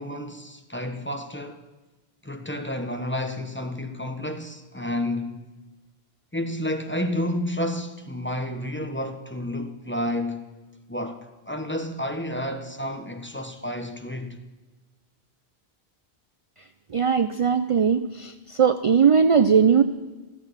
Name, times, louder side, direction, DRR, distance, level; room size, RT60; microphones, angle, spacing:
voice 1, 0.0-1.6 2.2-5.4 6.3-10.5 10.9-14.4, left 1 dB, 10° left, 1.0 m, -30 dB
voice 2, 16.9-19.8, right 6 dB, 45° right, 0.5 m, -19 dB
14.5 x 13.5 x 5.7 m
omnidirectional pair, 1.0 m